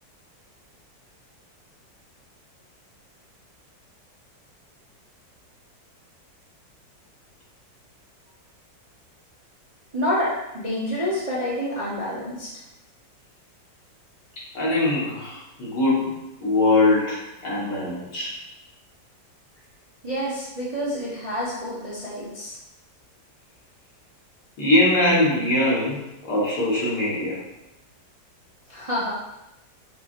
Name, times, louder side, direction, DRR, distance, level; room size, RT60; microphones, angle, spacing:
voice 1, 9.9-10.3 10.5-12.5 20.0-22.6 28.7-29.1, equal, 30° right, -9 dB, 0.7 m, -28 dB
voice 2, 14.5-18.3 24.6-26.0 26.2-27.4, left 2 dB, 65° left, -6 dB, 2.0 m, -22 dB
5.7 x 3.2 x 2.5 m, 0.93 s
omnidirectional pair, 2.0 m